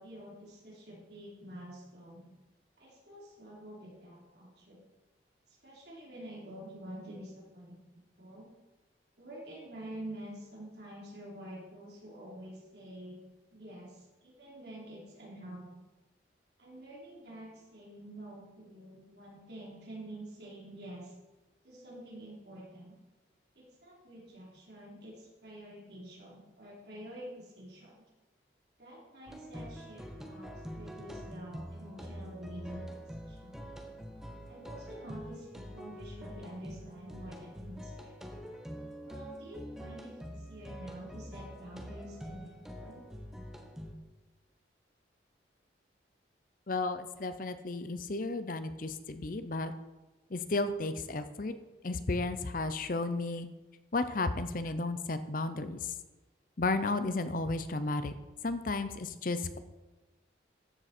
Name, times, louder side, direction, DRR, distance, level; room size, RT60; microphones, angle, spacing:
voice 1, 0.0-2.3 2.8-4.8 5.6-8.5 9.2-13.2 13.5-15.7 16.6-21.1 21.6-23.0 23.6-28.0 28.8-32.8 33.2-33.6 34.5-38.1 39.0-43.0, right 1 dB, 60° right, -4 dB, 3.5 m, -48 dB
sound 1, 29.3-44.0, equal, 5° right, 1.0 m, -45 dB
voice 2, 46.7-49.7 50.3-51.5 51.8-53.5 53.9-55.9 56.6-58.1 58.4-59.6, left 3 dB, 45° left, 11 dB, 0.6 m, -33 dB
13.0 x 7.5 x 4.4 m, 1.1 s
head